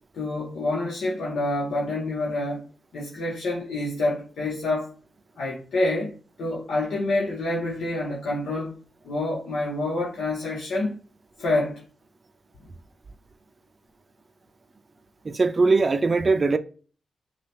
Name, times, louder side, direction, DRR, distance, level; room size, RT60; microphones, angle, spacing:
voice 1, 0.1-2.6 2.9-4.9 5.4-6.1 6.4-8.7 9.0-11.0 11.4-11.8, left 2 dB, 80° left, 1.0 m, -27 dB
voice 2, 15.2-16.6, right 3 dB, 40° right, 0.4 m, -20 dB
5.4 x 2.4 x 3.4 m
cardioid pair, 70°, 0 cm